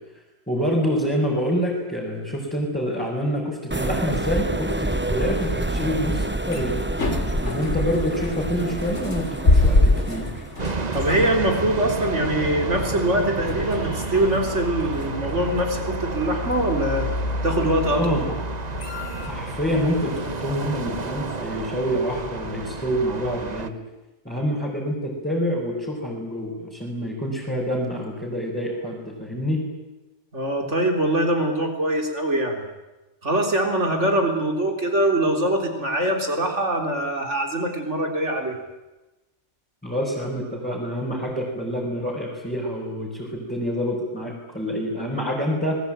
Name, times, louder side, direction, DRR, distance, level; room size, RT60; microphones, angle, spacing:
voice 1, 0.5-6.7 7.4-10.4 17.9-18.2 19.3-23.7 24.2-29.6 39.8-45.8, equal, 10° left, -5 dB, 5.8 m, -27 dB
sound 1, 3.7-10.7, right 1 dB, 10° right, 0.9 m, -28 dB
sound 2, 5.1-20.6, left 2 dB, 80° left, 3.4 m, -27 dB
sound 3, 10.6-23.7, right 4 dB, 35° right, 1.3 m, -31 dB
voice 2, 10.9-17.1 17.4-18.2 30.3-32.7 33.2-38.6, right 1 dB, 80° right, 3 dB, 4.4 m, -23 dB
27.0 x 20.5 x 9.1 m, 1.1 s
omnidirectional pair, 1.2 m